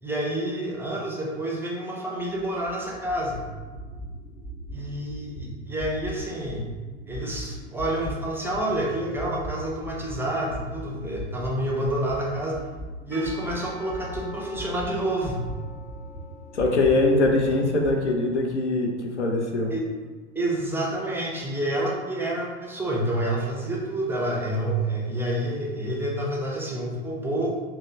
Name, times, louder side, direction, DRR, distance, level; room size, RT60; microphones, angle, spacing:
voice 1, 0.0-3.4 4.7-6.7 7.1-12.6 13.1-15.5 19.7-19.8 20.4-27.5, right 1 dB, 5° right, -3 dB, 0.4 m, -28 dB
sound 1, 2.2-10.2 10.5-18.0, equal, 70° left, 0.9 m, -39 dB
Percussion / Church bell, 13.1-18.3, left 2 dB, 30° left, 0.9 m, -46 dB
voice 2, 16.5-19.7, left 2 dB, 90° left, 2 dB, 0.5 m, -22 dB
3.4 x 2.0 x 2.5 m, 1.4 s
figure-of-eight pair, 80°, 34 cm